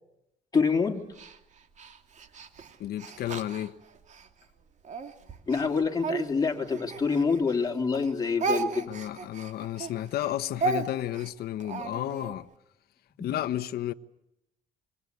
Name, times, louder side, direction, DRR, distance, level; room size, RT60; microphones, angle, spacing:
voice 1, 0.5-1.0 5.5-8.9 13.2-13.3, left 5 dB, 20° left, 3.4 m, -26 dB
Speech, 1.2-4.3 4.8-7.7 7.9-12.3, right 4 dB, 45° right, 2.7 m, -34 dB
voice 2, 2.8-3.8 8.9-12.5 13.2-13.9, left 12 dB, 65° left, 1.2 m, -32 dB
26.5 x 25.5 x 8.3 m
cardioid pair, 110°, 17 cm